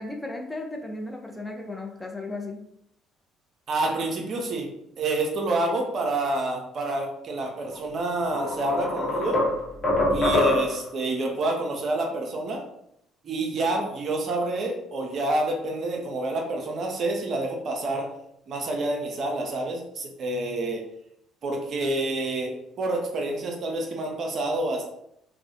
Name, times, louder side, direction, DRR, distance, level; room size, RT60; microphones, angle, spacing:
voice 1, 0.0-2.6, left 2 dB, 10° left, 1 dB, 0.5 m, -35 dB
voice 2, 3.7-4.7 5.0-9.4 10.1-12.6 13.2-18.1 18.5-20.8 21.4-24.8, right 2 dB, 50° right, 1 dB, 0.5 m, -28 dB
sound 1, 7.7-7.9 8.3-10.9, left 2 dB, 45° left, 0.8 m, -24 dB
2.3 x 2.1 x 2.7 m, 0.75 s
figure-of-eight pair, 50°, 0 cm